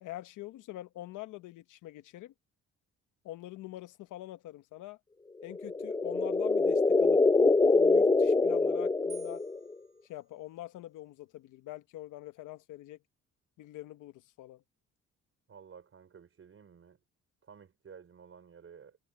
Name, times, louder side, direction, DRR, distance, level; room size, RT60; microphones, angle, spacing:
voice 1, 0.0-2.3 3.2-5.0 5.4-7.2 7.7-9.4 10.0-13.0 13.6-14.6, left 15 dB, 90° left, 1.1 m, -45 dB
sound 1, 5.5-9.7, left 3 dB, 15° left, 0.5 m, -25 dB
sound 2, 9.1-10.9, right 5 dB, 20° right, 7.7 m, -56 dB
voice 2, 15.5-17.0 17.4-19.0, right 6 dB, 45° right, 4.9 m, -53 dB
cardioid pair, 90°, 30 cm